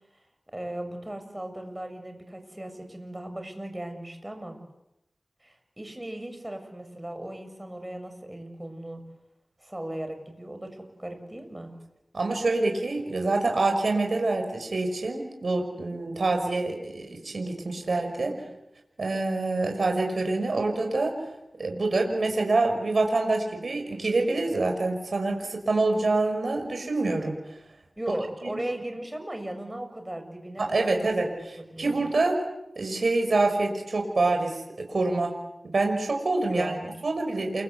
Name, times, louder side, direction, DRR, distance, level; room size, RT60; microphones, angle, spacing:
voice 1, 0.5-4.6 5.4-9.0 9.6-11.7 18.3-18.4 28.0-31.3 31.6-32.0 36.5-36.9, right 1 dB, 15° right, 6 dB, 7.2 m, -37 dB
voice 2, 12.1-18.3 19.0-21.1 21.6-27.3 28.5-28.6 30.6-31.3 31.8-32.4 32.8-35.3 35.6-36.7 37.0-37.6, right 2 dB, 65° right, 3 dB, 5.7 m, -26 dB
29.0 x 24.5 x 8.3 m, 0.89 s
wide cardioid pair, 70°, 0 cm